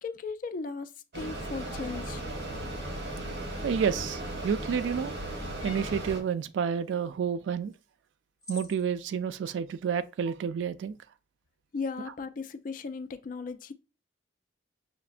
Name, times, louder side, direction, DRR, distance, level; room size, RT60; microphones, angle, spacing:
voice 1, 0.0-2.3 11.7-13.7, left 4 dB, 50° left, 0.3 m, -37 dB
Mechanisms, 1.1-6.2, right 1 dB, 65° right, 1.0 m, -36 dB
sound 1, 1.7-2.0 4.1-4.5 5.6-6.0 7.7-7.8 8.4-8.8, left 3 dB, 20° left, 1.1 m, -46 dB
voice 2, 3.6-5.1 5.6-7.7 8.5-11.0, right 7 dB, 85° right, 0.3 m, -30 dB
5.6 x 2.1 x 2.4 m
head